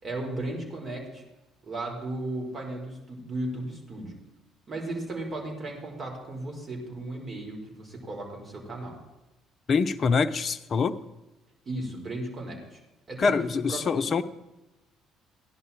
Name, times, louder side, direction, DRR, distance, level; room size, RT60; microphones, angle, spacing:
voice 1, 0.0-1.2 1.6-4.2 4.7-9.0 11.7-12.8 13.1-14.2, right 2 dB, 40° right, 1 dB, 5.4 m, -35 dB
voice 2, 9.7-11.0 13.2-14.2, left 5 dB, 45° left, 11 dB, 0.8 m, -25 dB
16.0 x 11.0 x 4.6 m, 1.0 s
hypercardioid pair, 55°, 0 cm